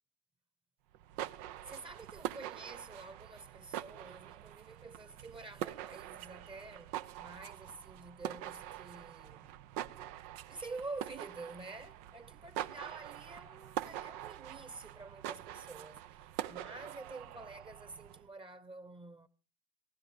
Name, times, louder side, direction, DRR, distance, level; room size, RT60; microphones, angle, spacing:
sound 1, 0.9-18.3, right 12 dB, 80° right, 0.8 m, -44 dB
voice 1, 1.6-9.5 10.5-19.3, right 3 dB, 25° right, 1.1 m, -48 dB
18.0 x 15.5 x 5.1 m
supercardioid pair, 95°, 20 cm